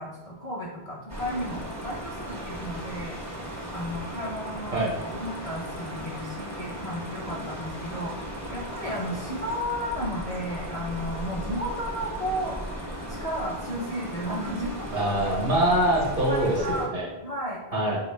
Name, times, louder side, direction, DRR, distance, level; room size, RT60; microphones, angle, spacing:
voice 1, 0.0-3.2 3.7-4.9 5.1-12.6 13.1-15.1 16.3-16.9 17.2-17.9, equal, 50° left, -4 dB, 0.5 m, -33 dB
sound 1, 1.1-16.9, equal, 20° right, 0.4 m, -36 dB
voice 2, 14.9-17.1 17.7-18.0, right 1 dB, 55° right, -2 dB, 0.9 m, -24 dB
3.7 x 2.4 x 3.1 m, 1.1 s
omnidirectional pair, 1.1 m